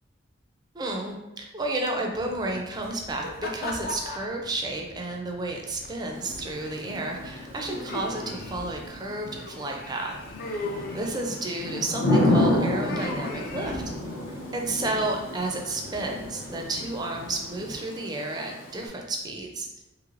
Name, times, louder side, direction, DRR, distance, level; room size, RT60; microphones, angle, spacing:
voice 1, 0.7-10.2 10.5-13.9 14.5-19.7, right 2 dB, 20° right, 1 dB, 0.4 m, -32 dB
sound 1, 2.1-17.7, left 2 dB, 50° left, 0.4 m, -40 dB
Thunder / Rain, 6.1-18.9, left 1 dB, 75° left, 0.7 m, -31 dB
3.1 x 3.0 x 2.5 m, 0.99 s
head